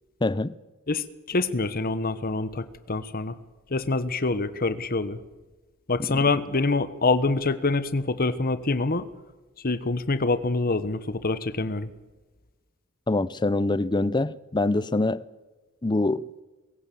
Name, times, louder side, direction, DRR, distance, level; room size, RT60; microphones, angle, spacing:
voice 1, 0.2-0.5 6.1-6.2 13.1-15.2 15.8-16.3, left 2 dB, 20° left, 0.6 m, -25 dB
voice 2, 0.9-3.3 3.7-5.2 5.9-9.1 9.6-11.9, left 3 dB, 45° left, 1.2 m, -26 dB
24.0 x 15.5 x 7.8 m
head